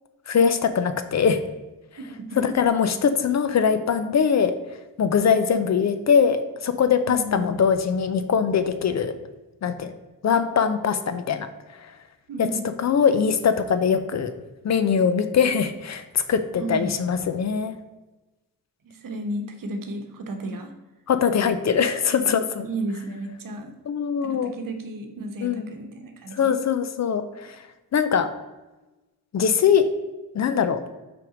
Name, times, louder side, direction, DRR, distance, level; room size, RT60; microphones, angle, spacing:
voice 1, 0.3-1.4 2.4-4.5 5.0-9.1 9.6-9.9 10.2-11.5 12.8-14.3 14.6-17.7 21.1-22.6 23.9-24.5 25.4-25.7 26.3-27.6 27.9-28.3 29.3-29.8 30.3-30.8, left 7 dB, 45° left, 10 dB, 0.5 m, -22 dB
voice 2, 2.1-2.5 7.0-7.7 12.3-12.7 16.5-17.1 18.8-20.7 22.1-23.7 24.2-26.6, right 1 dB, 55° right, 6 dB, 1.0 m, -33 dB
5.7 x 3.5 x 5.0 m, 1.1 s
cardioid pair, 95°, 38 cm